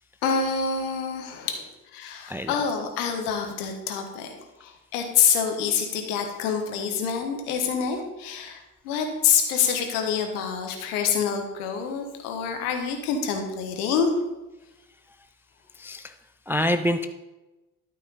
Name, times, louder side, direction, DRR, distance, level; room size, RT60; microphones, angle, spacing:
voice 1, 0.2-1.6 1.9-4.4 4.6-14.1, left 7 dB, 70° left, 4 dB, 1.3 m, -26 dB
voice 2, 15.8-16.1 16.5-17.1, equal, 5° right, 8 dB, 0.3 m, -26 dB
12.5 x 4.6 x 4.0 m, 1.0 s
figure-of-eight pair, 45°, 46 cm